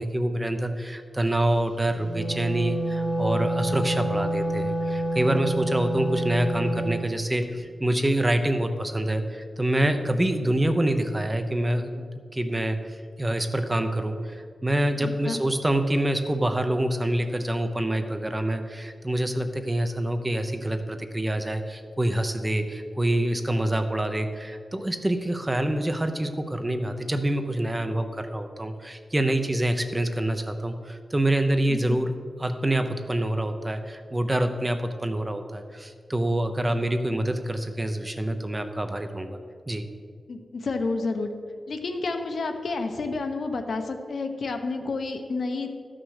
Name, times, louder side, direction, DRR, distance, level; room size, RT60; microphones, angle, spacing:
voice 1, 0.0-12.0 12.3-32.1 32.4-39.4 39.7-39.8, right 1 dB, 15° right, 7 dB, 0.6 m, -26 dB
Wind instrument woodwind instrument, 1.9-7.1, right 1 dB, 10° left, 1.2 m, -28 dB
voice 2, 15.0-15.4 31.7-32.0 40.3-41.3 41.7-45.7, left 3 dB, 65° left, 6 dB, 0.9 m, -30 dB
13.0 x 6.2 x 6.4 m, 2.1 s
wide cardioid pair, 170°, 0 cm